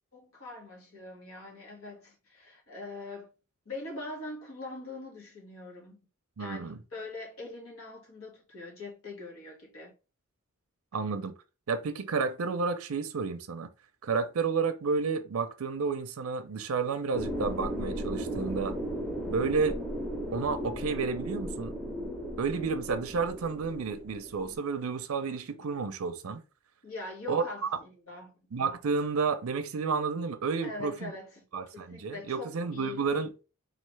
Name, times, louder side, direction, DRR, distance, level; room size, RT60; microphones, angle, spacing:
voice 1, 0.1-3.3 3.6-6.0 6.4-9.9 24.3-25.7 26.8-28.3 30.6-31.4 31.7-33.0, left 3 dB, 75° left, 1.7 m, -43 dB
voice 2, 6.4-6.8 10.9-11.3 11.7-13.7 14.0-18.8 19.3-19.8 20.3-21.7 22.4-26.4 27.3-27.7 28.5-31.1 31.5-33.3, right 5 dB, 80° right, 0.5 m, -31 dB
sound 1, 17.1-24.5, equal, 5° left, 0.8 m, -36 dB
4.0 x 3.1 x 3.2 m
head